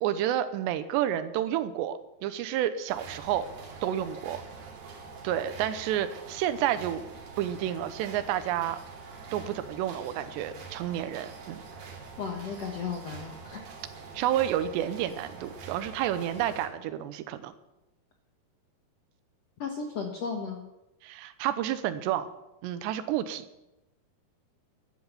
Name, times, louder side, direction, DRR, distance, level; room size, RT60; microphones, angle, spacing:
voice 1, 0.0-3.5 3.8-4.4 5.2-7.0 7.4-8.8 9.3-11.6 14.1-17.5 21.0-22.3 22.6-23.4, right 11 dB, 85° right, 12 dB, 3.0 m, -30 dB
sound 1, 2.9-16.7, right 4 dB, 60° right, 4.1 m, -45 dB
voice 2, 12.2-13.6 19.6-20.6, left 5 dB, 75° left, 2 dB, 1.5 m, -35 dB
12.5 x 11.5 x 6.7 m, 0.93 s
omnidirectional pair, 4.9 m